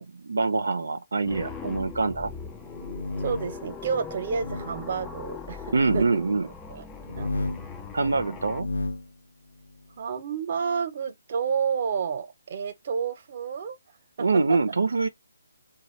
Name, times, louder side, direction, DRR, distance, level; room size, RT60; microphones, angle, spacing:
voice 1, 0.0-2.3 5.7-6.5 7.9-8.7 14.2-15.1, right 3 dB, 80° right, 0.6 m, -25 dB
sound 1, 1.2-8.6, left 5 dB, 5° left, 0.4 m, -40 dB
sound 2, 2.6-3.6 4.3-4.7 5.7-6.1 7.0-7.7 8.4-9.1, left 2 dB, 85° left, 0.7 m, -32 dB
voice 2, 3.2-6.0 6.7-7.3 10.0-13.8 14.5-14.6, right 6 dB, 40° right, 0.9 m, -30 dB
4.1 x 2.3 x 3.1 m
hypercardioid pair, 165°, 0 cm